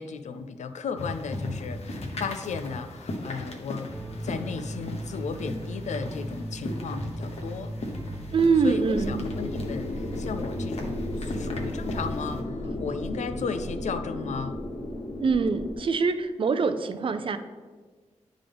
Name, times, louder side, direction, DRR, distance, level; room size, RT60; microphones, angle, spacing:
voice 1, 0.0-3.9 4.2-7.7 8.6-14.6, left 5 dB, 80° left, 9 dB, 0.4 m, -35 dB
sound 1, 1.0-12.4, left 1 dB, 60° left, 0.9 m, -38 dB
sound 2, 3.9-13.8, right 1 dB, 20° right, 1.3 m, -38 dB
voice 2, 8.3-9.2 15.2-17.4, right 4 dB, 50° right, 10 dB, 0.4 m, -24 dB
sound 3, 8.9-15.7, left 1 dB, 40° left, 0.7 m, -34 dB
9.8 x 3.7 x 3.4 m, 1.4 s
wide cardioid pair, 135°, 12 cm